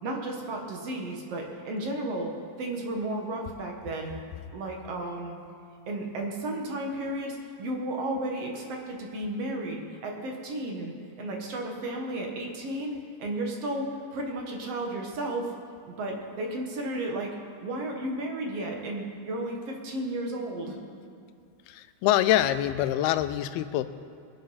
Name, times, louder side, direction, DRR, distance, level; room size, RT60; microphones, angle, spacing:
voice 1, 0.0-4.2 4.5-5.4 5.9-15.5 15.9-17.4 17.6-20.8, right 1 dB, 50° right, 0 dB, 2.0 m, -33 dB
voice 2, 21.7-23.8, left 12 dB, 85° left, 11 dB, 2.5 m, -25 dB
23.0 x 7.8 x 5.7 m, 2.4 s
omnidirectional pair, 4.4 m